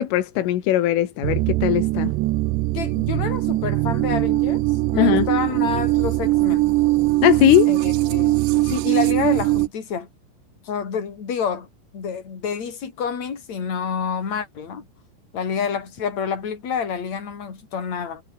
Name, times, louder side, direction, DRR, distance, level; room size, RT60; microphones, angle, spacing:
voice 1, 0.0-2.1 5.0-5.3 7.2-7.7, left 12 dB, 85° left, 4.5 m, -19 dB
sound 1, 1.2-9.7, right 18 dB, 80° right, 2.8 m, -21 dB
voice 2, 2.7-4.6 4.9-6.7 7.7-10.1 10.6-11.7 11.9-14.8 15.3-18.2, left 6 dB, 35° left, 5.0 m, -28 dB
omnidirectional pair, 5.6 m